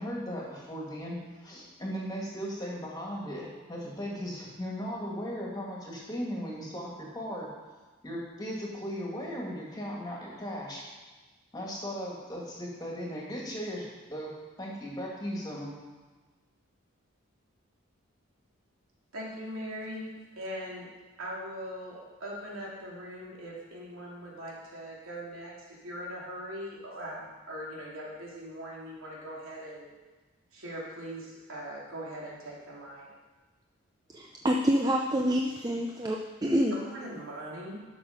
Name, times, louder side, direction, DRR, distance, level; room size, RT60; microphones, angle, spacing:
voice 1, 0.0-7.5 8.0-10.8 11.5-15.7, equal, 20° left, -3 dB, 2.0 m, -37 dB
voice 2, 19.1-20.9 21.2-29.9 30.5-33.1 36.7-37.8, equal, 80° right, -4 dB, 2.8 m, -41 dB
voice 3, 34.1-36.8, equal, 20° right, 0 dB, 0.5 m, -27 dB
12.0 x 6.3 x 5.1 m, 1.3 s
head